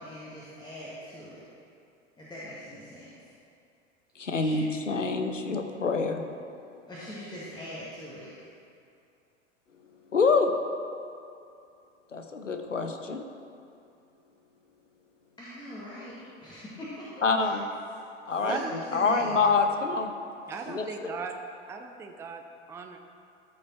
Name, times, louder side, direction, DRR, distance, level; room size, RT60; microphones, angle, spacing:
voice 1, 0.0-1.4 2.2-3.1 4.3-4.5 6.9-8.3 15.4-17.5 18.4-19.4, equal, 10° left, -8 dB, 1.7 m, -42 dB
voice 2, 4.2-6.2 10.1-10.5 12.1-13.2 17.2-17.7 18.3-18.6 18.9-20.1 20.7-20.8, left 4 dB, 85° left, 6 dB, 0.8 m, -26 dB
voice 3, 18.4-18.7 20.5-21.4 21.7-23.0, right 5 dB, 10° right, 4 dB, 0.4 m, -37 dB
13.5 x 5.6 x 4.4 m, 2.5 s
figure-of-eight pair, 85°, 37 cm